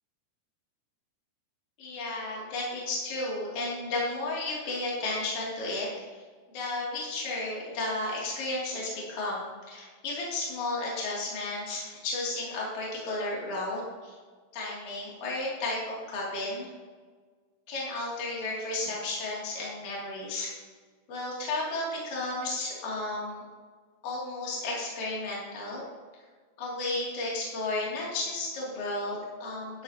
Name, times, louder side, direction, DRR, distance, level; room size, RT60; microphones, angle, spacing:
voice 1, 1.8-6.2 6.5-14.2 14.5-16.7 17.7-20.5 21.1-23.4 24.0-25.8 26.6-29.8, left 2 dB, 45° left, -5 dB, 3.9 m, -33 dB
12.0 x 11.0 x 2.9 m, 1.5 s
omnidirectional pair, 4.8 m